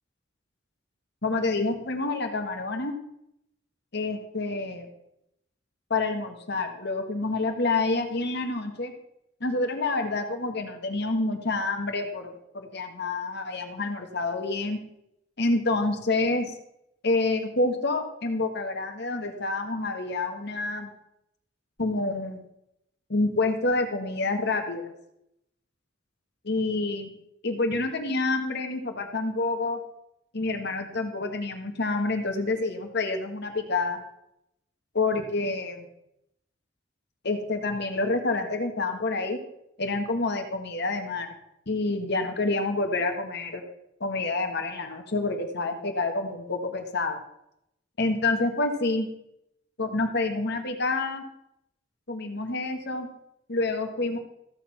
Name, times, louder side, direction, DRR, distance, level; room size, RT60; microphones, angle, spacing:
voice 1, 1.2-2.9 3.9-4.9 5.9-8.9 9.4-14.8 15.4-16.5 17.0-20.9 21.8-22.4 23.1-24.9 26.4-27.1 27.4-29.8 30.3-34.0 34.9-35.9 37.2-39.4 39.8-41.3 41.7-43.6 44.0-47.2 48.0-49.1 49.8-51.2 52.1-53.1 53.5-54.2, left 3 dB, 60° left, 5 dB, 1.6 m, -28 dB
14.5 x 6.8 x 5.9 m, 0.80 s
head